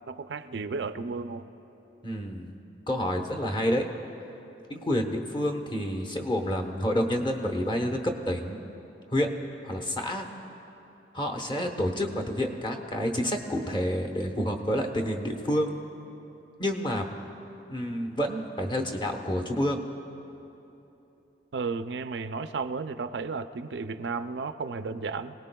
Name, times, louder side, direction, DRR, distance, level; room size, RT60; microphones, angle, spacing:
voice 1, 0.1-1.5 21.5-25.3, right 4 dB, 75° right, 10 dB, 0.5 m, -33 dB
voice 2, 2.0-2.6 2.9-3.8 4.7-8.6 9.1-9.3 9.6-10.3 11.1-15.7 16.6-17.1 17.7-19.8, equal, 25° left, 4 dB, 1.0 m, -29 dB
25.0 x 18.0 x 2.3 m, 3.0 s
head